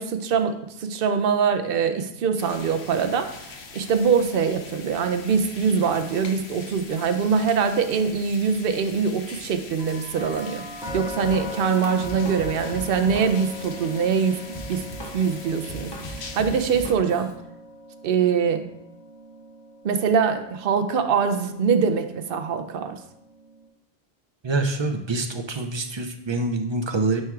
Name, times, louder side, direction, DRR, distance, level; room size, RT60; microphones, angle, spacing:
voice 1, 0.0-10.6 10.9-14.8 15.1-17.3 18.0-18.6 19.8-23.0, right 6 dB, 65° right, 8 dB, 0.7 m, -23 dB
sound 1, 2.4-16.9, left 4 dB, 85° left, 1.1 m, -42 dB
sound 2, 9.8-23.7, left 1 dB, 5° right, 1.7 m, -40 dB
Drum kit, 10.9-17.3, equal, 25° left, 0.9 m, -38 dB
voice 2, 24.4-27.2, right 3 dB, 45° right, 6 dB, 0.4 m, -26 dB
9.3 x 4.5 x 2.4 m, 0.81 s
omnidirectional pair, 1.1 m